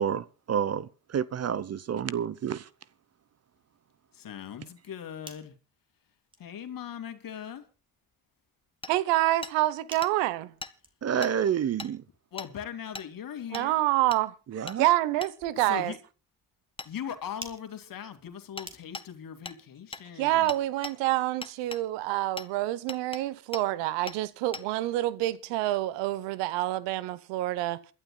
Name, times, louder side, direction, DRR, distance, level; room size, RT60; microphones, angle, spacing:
voice 1, 0.0-2.7 11.0-12.0 14.5-14.9, right 8 dB, 35° right, 0.8 m, -29 dB
voice 2, 4.1-5.5 6.4-7.7 12.3-13.8 15.5-16.0 16.8-20.5, left 9 dB, 50° left, 2.5 m, -39 dB
sound 1, 5.1-19.3, right 1 dB, 10° right, 2.8 m, -54 dB
Hammer, 8.8-8.9 9.4-9.6 10.0-10.1 10.6-10.7 11.2-11.3 11.8-11.9 12.4-12.5 12.9-13.1 13.5-13.7 14.1-14.2 14.7-14.8 15.2-15.3 16.8-16.9 18.6-18.7 18.9-19.1 19.5-19.6 19.9-20.1 20.5-21.0 21.4-21.8 22.4-22.5 22.9-23.2 23.5-23.7 24.1-24.2 24.5-24.7, left 3 dB, 15° left, 1.0 m, -39 dB
voice 3, 8.9-10.5 13.5-15.9 20.2-27.8, right 16 dB, 80° right, 0.9 m, -27 dB
27.5 x 12.0 x 2.3 m
supercardioid pair, 80°, 42 cm